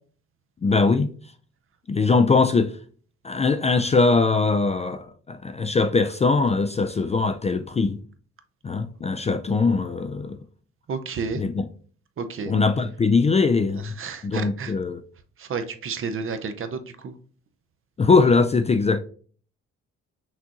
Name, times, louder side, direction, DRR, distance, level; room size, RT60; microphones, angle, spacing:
voice 1, 0.6-1.1 1.9-2.7 3.2-8.0 8.6-10.4 11.3-11.7 12.5-13.9 14.2-15.0 18.0-19.0, left 4 dB, 25° left, 0.3 m, -21 dB
voice 2, 10.9-11.4 12.2-12.5 14.0-14.7 15.4-17.1, right 5 dB, 45° right, 0.6 m, -31 dB
6.0 x 2.5 x 2.8 m
cardioid pair, 90°, 30 cm